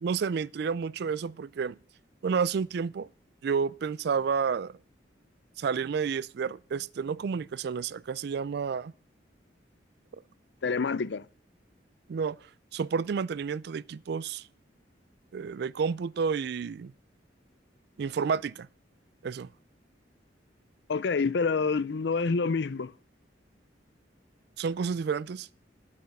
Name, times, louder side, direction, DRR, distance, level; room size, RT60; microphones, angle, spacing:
voice 1, 0.0-1.8 2.2-3.1 3.4-4.7 5.6-8.9 12.1-12.4 12.7-14.5 15.3-16.9 18.0-18.7 19.2-19.5 24.6-25.5, right 6 dB, 60° right, 0.3 m, -30 dB
voice 2, 10.6-11.2 20.9-22.9, left 4 dB, 65° left, 0.5 m, -27 dB
8.4 x 6.5 x 6.9 m
head